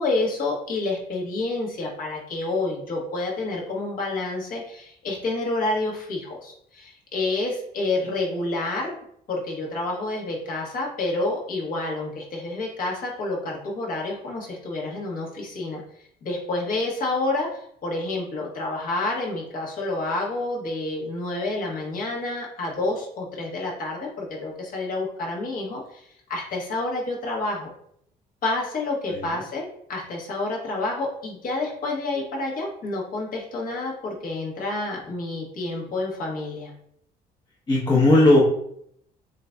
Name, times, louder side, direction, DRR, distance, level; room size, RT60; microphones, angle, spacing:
voice 1, 0.0-8.9 9.3-15.8 16.2-27.7 28.4-36.7, left 2 dB, 55° left, -3 dB, 1.4 m, -29 dB
voice 2, 29.1-29.4 37.7-38.4, left 2 dB, 25° left, -4 dB, 0.9 m, -17 dB
7.3 x 2.6 x 2.3 m, 0.71 s
cardioid pair, 110°, 17 cm